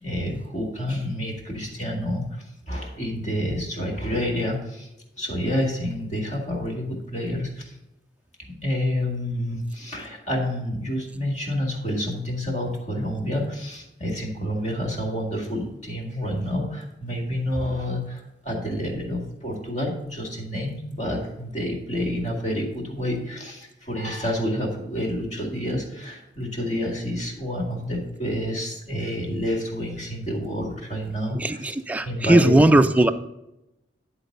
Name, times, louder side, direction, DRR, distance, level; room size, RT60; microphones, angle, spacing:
voice 1, 0.0-4.9 5.2-7.8 8.6-31.6 32.0-32.8, equal, 40° left, 2.0 m, -29 dB
voice 2, 31.3-33.1, right 1 dB, 10° right, 0.4 m, -18 dB
10.5 x 4.0 x 6.5 m
head